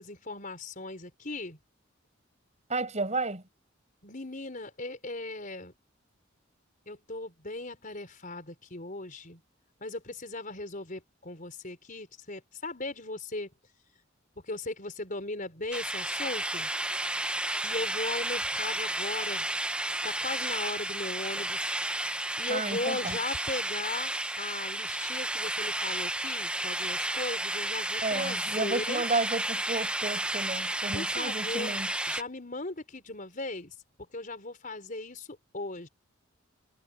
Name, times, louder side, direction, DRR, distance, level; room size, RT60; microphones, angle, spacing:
voice 1, 0.0-1.6 4.0-5.7 6.9-9.4 9.8-13.5 14.4-16.7 17.6-19.5 20.0-21.7 22.4-29.0 30.9-31.8 32.1-33.8 34.1-35.9, left 2 dB, 45° left, 4.9 m, -38 dB
voice 2, 2.7-3.4 22.5-23.2 28.0-31.9, right 3 dB, 35° right, 5.7 m, -32 dB
sound 1, 15.7-32.2, right 1 dB, 5° right, 1.0 m, -32 dB
head